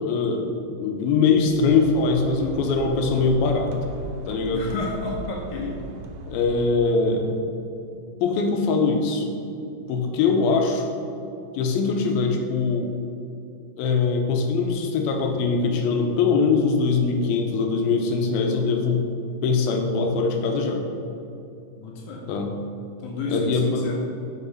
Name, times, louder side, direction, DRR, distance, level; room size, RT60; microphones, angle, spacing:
voice 1, 0.0-3.7 4.3-4.7 6.3-7.4 8.2-9.3 9.9-10.9 11.5-12.9 13.8-19.0 19.4-20.8 22.3-22.5 23.3-23.9, left 4 dB, 85° left, 3 dB, 2.6 m, -22 dB
sound 1, 1.1-7.2, right 3 dB, 80° right, 2.0 m, -38 dB
voice 2, 4.5-5.8 21.7-22.2 23.0-24.0, left 3 dB, 70° left, -1 dB, 2.1 m, -31 dB
6.3 x 6.1 x 5.4 m, 2.7 s
omnidirectional pair, 4.2 m